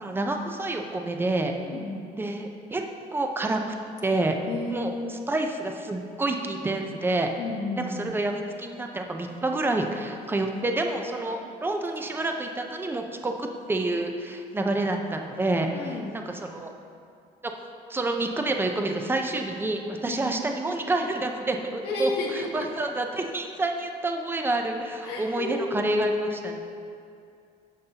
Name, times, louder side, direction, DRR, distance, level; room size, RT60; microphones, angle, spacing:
voice 1, 0.0-1.5 2.1-2.8 3.1-3.6 4.0-4.4 4.7-7.3 7.8-16.7 17.4-17.5 17.9-26.6, right 2 dB, 15° right, 3 dB, 0.7 m, -28 dB
voice 2, 1.6-2.1 4.5-5.2 7.4-8.1 15.7-16.1 20.1-20.2 21.8-22.7 25.0-26.6, left 2 dB, 80° left, -2 dB, 1.0 m, -32 dB
14.5 x 5.3 x 2.9 m, 2.4 s
cardioid pair, 110°, 17 cm